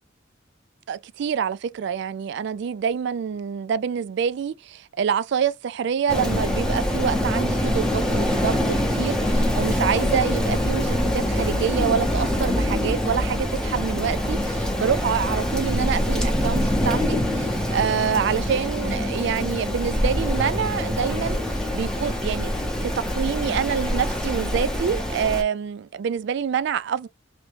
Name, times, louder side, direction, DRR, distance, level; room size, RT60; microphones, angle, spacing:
voice 1, 0.9-22.5 22.8-27.1, right 7 dB, 60° right, 0.3 m, -26 dB
Rain, 6.1-25.4, left 1 dB, 5° left, 0.7 m, -24 dB
2.9 x 2.7 x 3.3 m
head